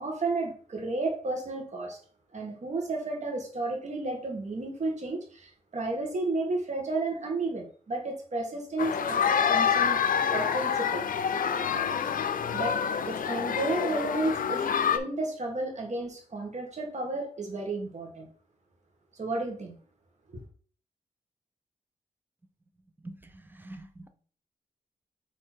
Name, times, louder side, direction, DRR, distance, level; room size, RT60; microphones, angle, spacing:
voice 1, 0.0-2.0 2.3-10.0 10.3-11.0 12.5-12.8 13.1-14.7 14.9-18.3 19.2-19.8 20.3-20.4, right 2 dB, 55° right, 2 dB, 1.7 m, -32 dB
sound 1, 8.8-15.0, left 7 dB, 80° left, 0.5 m, -27 dB
voice 2, 23.0-24.1, right 2 dB, 15° right, 7 dB, 0.8 m, -45 dB
6.4 x 3.4 x 4.5 m, 0.44 s
wide cardioid pair, 115°, 14 cm